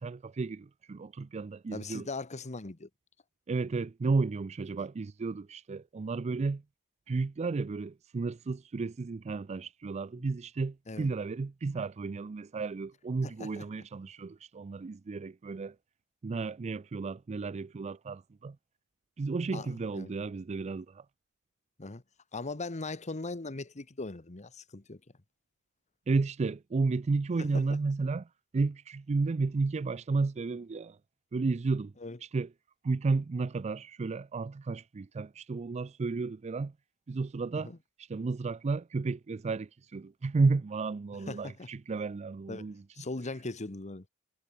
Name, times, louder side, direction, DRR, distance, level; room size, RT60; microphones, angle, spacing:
voice 1, 0.0-2.1 3.5-6.6 7.1-15.8 16.2-18.6 19.2-21.0 26.1-28.3 28.5-31.0 31.3-31.9 32.2-32.5 32.8-36.7 37.1-37.7 38.0-42.8, right 3 dB, 30° right, 0.4 m, -32 dB
voice 2, 1.7-2.9 10.9-11.1 13.2-13.6 19.5-20.1 21.8-22.0 22.3-25.0 27.4-27.6 32.0-32.2 37.5-37.8 41.2-41.7 42.5-44.1, left 3 dB, 30° left, 1.2 m, -40 dB
head